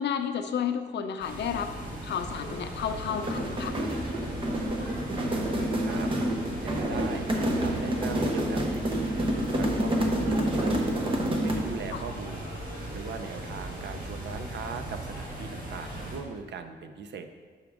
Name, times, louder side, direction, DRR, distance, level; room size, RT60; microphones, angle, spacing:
voice 1, 0.0-1.7 2.0-3.8 11.9-12.0, left 8 dB, 70° left, 8 dB, 0.5 m, -31 dB
sound 1, 1.2-16.2, right 1 dB, 50° right, 1.6 m, -38 dB
sound 2, 3.1-11.8, right 1 dB, 30° right, 0.8 m, -28 dB
voice 2, 5.8-10.9 11.2-12.5 12.9-17.3, right 5 dB, 70° right, 8 dB, 0.5 m, -40 dB
6.4 x 5.9 x 3.5 m, 1.5 s
wide cardioid pair, 145°, 19 cm